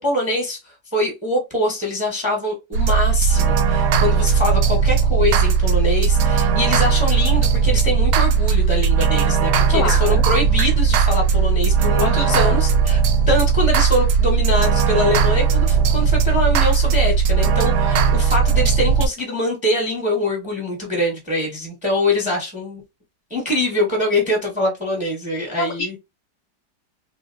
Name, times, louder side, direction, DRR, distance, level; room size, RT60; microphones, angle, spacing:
voice 1, 0.0-13.0 13.3-22.8 23.3-25.9, left 1 dB, 5° right, 0.7 m, -23 dB
sound 1, 2.7-19.1, right 6 dB, 75° right, 1.0 m, -17 dB
voice 2, 9.7-10.2 12.0-12.6 25.6-26.0, left 5 dB, 70° left, 0.7 m, -26 dB
3.2 x 2.7 x 2.5 m
omnidirectional pair, 2.0 m